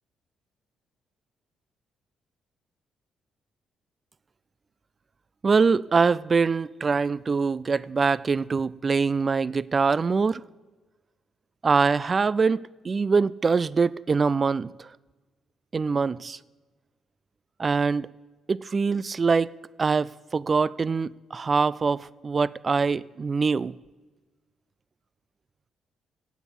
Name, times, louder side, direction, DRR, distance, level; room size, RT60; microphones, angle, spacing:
voice 1, 5.4-10.4 11.6-14.9 15.7-16.4 17.6-18.1 18.5-19.5 19.8-23.8, right 4 dB, 35° right, 0.4 m, -24 dB
16.5 x 8.2 x 7.3 m
cardioid pair, 90°, 0 cm